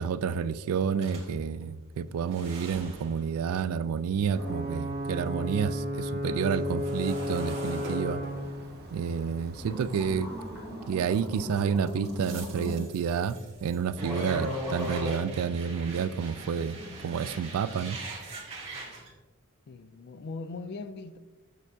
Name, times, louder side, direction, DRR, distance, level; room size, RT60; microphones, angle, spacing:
voice 1, 0.0-8.2 8.9-10.3 10.9-16.8 17.0-18.0, right 6 dB, 75° right, 0.3 m, -29 dB
sound 1, 1.0-5.3 5.6-10.5 11.1-19.1, right 3 dB, 30° right, 1.6 m, -44 dB
Ocean / Boat Water vehicle / Alarm, 4.3-11.9, equal, 50° right, 1.0 m, -35 dB
sound 2, 9.6-12.8 13.5-13.6 14.0-15.1, left 1 dB, ahead, 1.9 m, -36 dB
voice 2, 19.7-21.2, left 3 dB, 50° left, 0.3 m, -40 dB
7.2 x 6.5 x 2.7 m
head